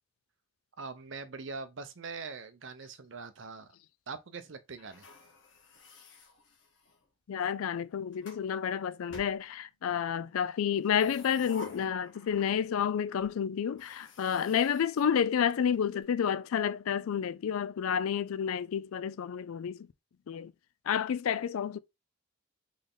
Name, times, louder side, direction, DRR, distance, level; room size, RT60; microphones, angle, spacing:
voice 1, 0.8-3.7 4.1-5.1, right 4 dB, 60° right, 0.6 m, -42 dB
sound 1, 4.8-7.1 7.8-8.5 9.1-10.0 10.7-12.9 13.2-13.3 13.7-15.8, left 3 dB, 60° left, 1.1 m, -52 dB
voice 2, 7.3-19.9 20.3-20.5 20.9-21.8, left 8 dB, 80° left, 0.3 m, -30 dB
3.9 x 3.3 x 3.8 m
head